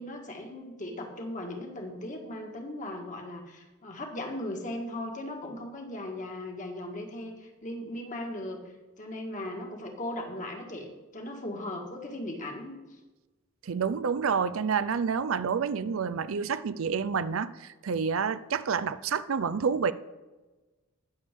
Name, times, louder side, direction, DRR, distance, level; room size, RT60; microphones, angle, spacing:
voice 1, 0.0-8.6 9.0-12.7, left 1 dB, 40° left, 1.7 m, -38 dB
voice 2, 13.6-19.9, right 6 dB, 80° right, 0.5 m, -28 dB
20.0 x 7.0 x 3.7 m
head